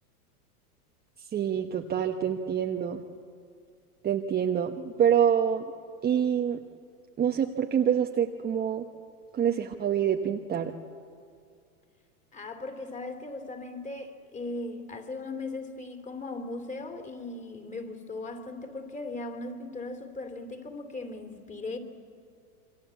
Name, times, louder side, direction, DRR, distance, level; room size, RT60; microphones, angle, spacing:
voice 1, 1.3-3.0 4.0-5.7 6.0-6.6 7.2-8.8 9.3-10.7, right 8 dB, 20° right, 1.0 m, -26 dB
voice 2, 12.3-21.8, left 2 dB, 15° left, 2.9 m, -38 dB
27.0 x 24.0 x 8.3 m
hypercardioid pair, 115°, 46 cm